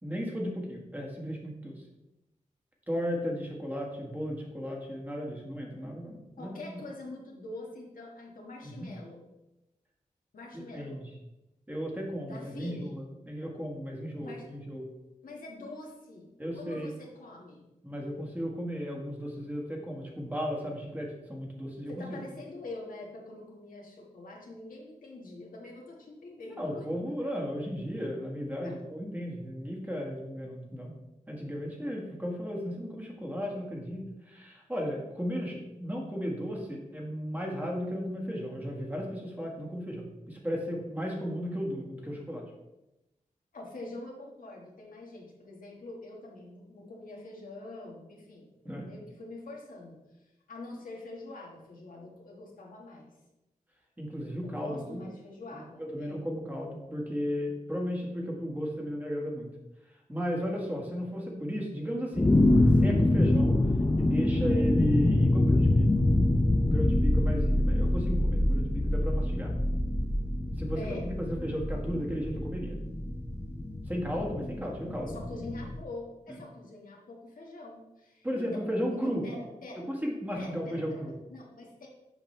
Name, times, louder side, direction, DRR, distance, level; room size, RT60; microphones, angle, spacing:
voice 1, 0.0-1.8 2.9-6.8 8.6-8.9 10.5-11.1 11.7-14.9 16.4-16.9 17.8-22.2 26.6-30.9 31.3-42.4 48.6-48.9 54.0-55.0 55.5-59.5 60.1-62.4 62.7-63.6 64.0-65.9 66.7-69.5 70.6-72.8 73.9-75.2 76.3-76.4 78.2-79.2 79.9-81.1, equal, 10° right, -1 dB, 1.5 m, -35 dB
voice 2, 6.4-9.2 10.3-11.0 12.2-13.0 14.2-14.5 15.2-16.3 16.5-17.7 21.9-26.8 27.2-27.3 28.6-28.7 43.5-50.0 50.5-53.1 54.4-56.3 70.7-71.0 75.0-78.6 78.9-79.9 80.3-81.0 81.3-81.9, left 2 dB, 85° left, -1 dB, 1.6 m, -45 dB
sound 1, 62.1-75.8, left 1 dB, 15° left, 0.6 m, -25 dB
7.3 x 5.2 x 3.2 m, 0.94 s
wide cardioid pair, 95°, 14 cm